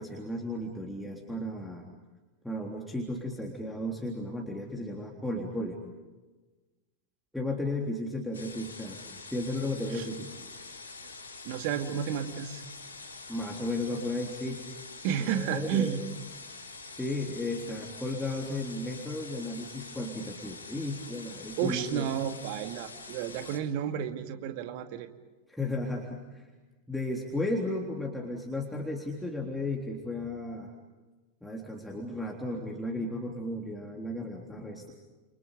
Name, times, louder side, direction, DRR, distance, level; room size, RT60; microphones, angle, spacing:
voice 1, 0.0-1.9 2.4-5.8 7.3-9.1 9.3-10.3 13.3-14.6 15.2-16.0 16.9-22.1 25.5-26.5 26.9-30.7 31.4-34.9, left 1 dB, 5° left, -2 dB, 3.6 m, -34 dB
sound 1, 8.3-23.6, left 3 dB, 70° left, 5.0 m, -45 dB
voice 2, 11.4-12.6 15.0-16.0 21.6-25.1, right 9 dB, 45° right, 7 dB, 2.4 m, -31 dB
30.0 x 29.5 x 5.1 m, 1.2 s
figure-of-eight pair, 90°, 0 cm